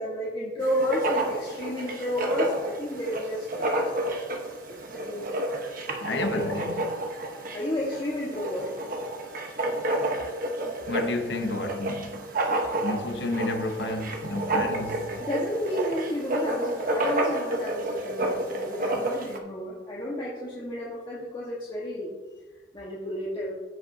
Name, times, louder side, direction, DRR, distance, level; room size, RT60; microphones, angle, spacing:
voice 1, 0.0-3.8 4.7-5.3 6.1-6.4 6.8-6.9 7.5-8.7 14.4-22.1 22.7-23.5, equal, 30° left, 1.4 m, -32 dB
Writing, 0.6-19.4, right 1 dB, 55° right, 1.1 m, -30 dB
voice 2, 6.0-6.9 10.9-12.2 12.8-15.2, left 2 dB, 70° left, 0.9 m, -31 dB
15.5 x 5.3 x 2.7 m
head